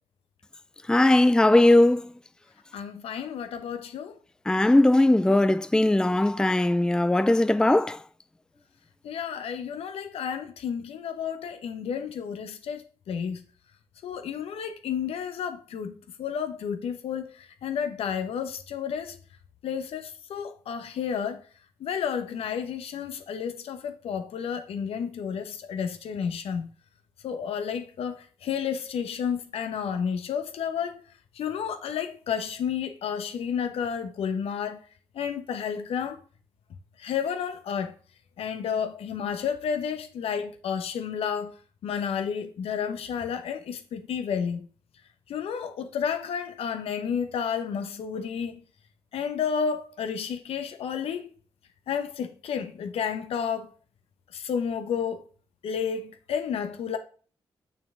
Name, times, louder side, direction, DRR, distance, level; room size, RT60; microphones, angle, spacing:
voice 1, 0.9-2.1 4.5-8.0, left 1 dB, 5° left, 0.4 m, -19 dB
voice 2, 2.7-4.2 9.0-13.4 14.0-19.2 19.6-21.4 21.8-26.7 27.2-31.0 31.4-34.8 35.1-36.2 37.0-37.9 38.4-41.5 41.8-44.7 45.3-48.6 49.1-51.3 51.9-53.7 54.3-55.2 55.6-57.0, left 7 dB, 80° left, 1.0 m, -31 dB
7.2 x 5.8 x 3.7 m
supercardioid pair, 50°, 10 cm